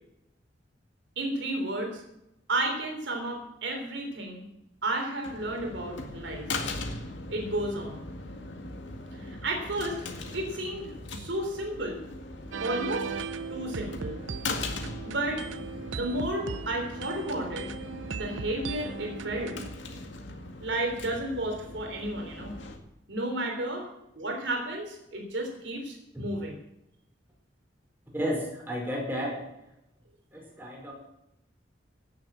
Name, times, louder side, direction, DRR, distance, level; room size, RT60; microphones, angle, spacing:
voice 1, 1.2-2.0 2.5-4.4 4.8-6.4 7.3-8.0 9.2-10.0 10.3-12.0 12.6-13.1 13.5-14.2 15.0-15.4 15.9-17.7 18.1-19.6 20.6-22.5 23.1-23.9 24.1-26.6, right 1 dB, 75° right, 2 dB, 3.5 m, -32 dB
sound 1, 5.2-22.8, left 2 dB, 80° left, 2.0 m, -40 dB
sound 2, 12.5-19.7, right 5 dB, 90° right, 0.6 m, -38 dB
voice 2, 28.1-29.5 30.3-30.9, equal, 10° right, -2 dB, 4.9 m, -32 dB
16.0 x 7.6 x 7.6 m, 0.85 s
head